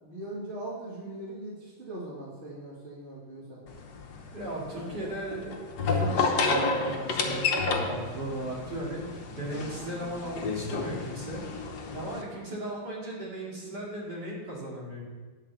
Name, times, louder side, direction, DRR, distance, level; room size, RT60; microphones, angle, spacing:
voice 1, 0.0-3.6 4.7-5.1, right 1 dB, 35° right, -6 dB, 2.3 m, -40 dB
sound 1, 3.7-12.2, left 3 dB, 55° left, 1.4 m, -31 dB
voice 2, 4.3-5.6 5.8-11.4 11.9-15.0, right 1 dB, 50° right, -5 dB, 2.8 m, -37 dB
10.5 x 4.8 x 7.1 m, 1.4 s
omnidirectional pair, 2.3 m